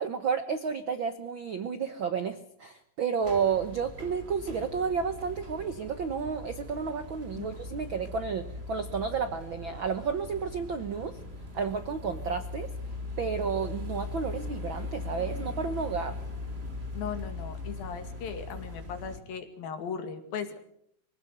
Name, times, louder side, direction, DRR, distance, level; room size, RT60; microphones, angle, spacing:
voice 1, 0.0-11.2 11.5-12.7 13.2-16.2, right 6 dB, 90° right, 9 dB, 1.0 m, -31 dB
sound 1, 3.2-19.2, left 2 dB, 20° right, 3.0 m, -40 dB
voice 2, 7.4-7.8 16.9-20.6, left 7 dB, 90° left, 7 dB, 4.0 m, -38 dB
24.5 x 17.0 x 8.1 m, 0.70 s
omnidirectional pair, 4.0 m